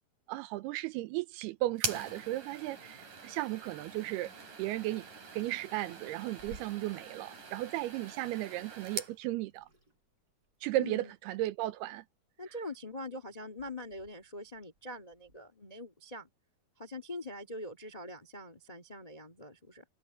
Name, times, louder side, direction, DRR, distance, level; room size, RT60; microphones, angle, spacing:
voice 1, 0.3-4.3 4.6-5.1 5.3-9.7 10.6-12.0, right 16 dB, 80° right, 2.6 m, -35 dB
sound 1, 1.7-9.2, right 5 dB, 50° right, 5.7 m, -43 dB
Water tap faucet / Sink (filling or washing), 6.4-15.4, right 2 dB, 20° right, 7.4 m, -59 dB
voice 2, 10.8-11.1 12.4-16.3 16.8-19.8, left 1 dB, 65° left, 0.3 m, -43 dB
omnidirectional pair, 4.8 m